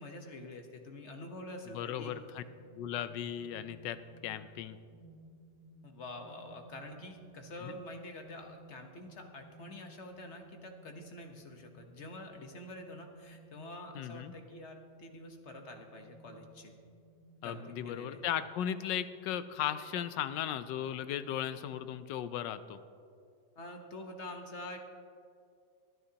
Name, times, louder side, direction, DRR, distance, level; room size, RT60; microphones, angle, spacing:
voice 1, 0.0-2.1 5.8-16.7 17.4-18.2 23.6-24.8, left 1 dB, 45° left, 4 dB, 1.1 m, -47 dB
voice 2, 1.7-2.4 2.7-4.8 7.6-7.7 13.9-14.3 17.4-22.8, left 10 dB, 80° left, 13 dB, 1.2 m, -36 dB
sound 1, 2.4-21.8, right 2 dB, 70° right, 2.7 m, -58 dB
24.0 x 9.6 x 2.8 m, 2.3 s
omnidirectional pair, 1.9 m